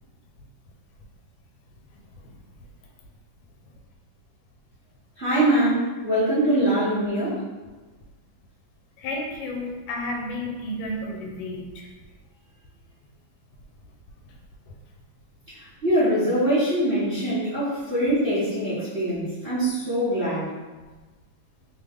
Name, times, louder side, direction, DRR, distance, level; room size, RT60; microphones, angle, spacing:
voice 1, 5.2-7.4 15.5-20.5, right 1 dB, 40° right, -13 dB, 0.8 m, -23 dB
voice 2, 9.0-11.9, left 1 dB, 85° left, 0 dB, 1.4 m, -32 dB
3.2 x 2.2 x 3.4 m, 1.3 s
omnidirectional pair, 2.1 m